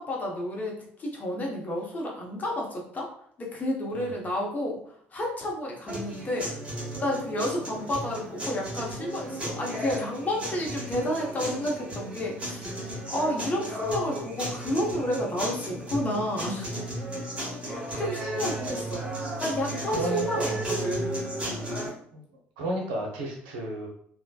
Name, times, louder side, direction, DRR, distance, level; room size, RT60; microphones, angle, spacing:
voice 1, 0.0-3.1 3.4-6.5 6.8-12.7 13.1-16.7 17.6-19.1 19.4-21.2, left 1 dB, 25° left, -2 dB, 0.8 m, -31 dB
sound 1, 5.9-21.9, right 1 dB, 20° right, 1.2 m, -34 dB
voice 2, 18.0-18.5 19.9-20.6 22.1-22.2 22.6-23.9, right 1 dB, 65° right, 0 dB, 0.6 m, -33 dB
3.2 x 2.1 x 2.4 m, 0.63 s
figure-of-eight pair, 55°, 6 cm